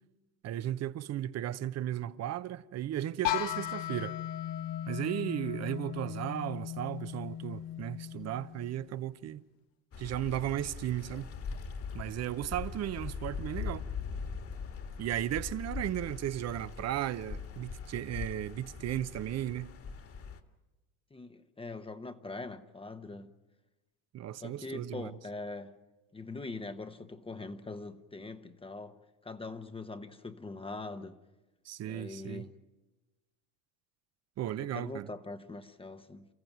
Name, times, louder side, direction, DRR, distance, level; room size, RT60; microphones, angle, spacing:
voice 1, 0.4-4.2 4.9-9.4 10.0-11.3 11.9-13.8 15.0-19.7 24.1-25.1 31.7-32.5 34.4-35.1, right 12 dB, 35° right, 0.8 m, -35 dB
sound 1, 3.2-9.0, left 11 dB, 65° left, 1.3 m, -37 dB
sound 2, 9.9-20.4, left 5 dB, 30° left, 1.7 m, -41 dB
voice 2, 21.1-23.3 24.4-25.7 26.1-29.0 29.2-31.2 31.8-32.5 34.5-36.3, left 3 dB, 15° left, 1.0 m, -42 dB
29.0 x 14.5 x 9.3 m
supercardioid pair, 110°, 43 cm